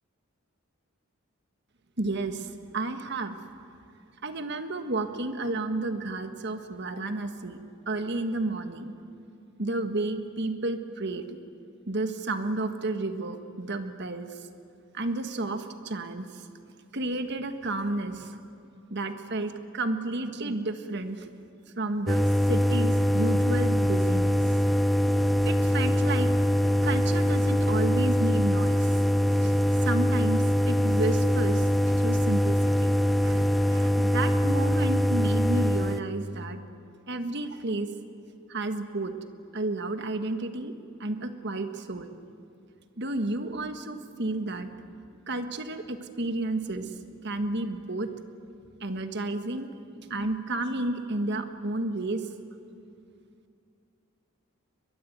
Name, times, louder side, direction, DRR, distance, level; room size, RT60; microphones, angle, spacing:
voice 1, 2.0-3.4 4.2-7.6 7.9-8.9 9.6-11.4 11.9-14.3 14.9-16.5 16.9-18.4 18.9-21.3 21.8-24.4 25.4-26.3 26.8-32.9 33.2-36.6 37.1-37.9 38.5-39.1 39.5-40.7 41.0-42.1 43.0-45.0 45.3-48.1 48.8-49.7 49.9-52.3, right 2 dB, 50° right, 8 dB, 1.6 m, -31 dB
sound 1, 22.1-36.0, equal, ahead, 0.7 m, -23 dB
22.5 x 22.5 x 9.4 m, 2.6 s
head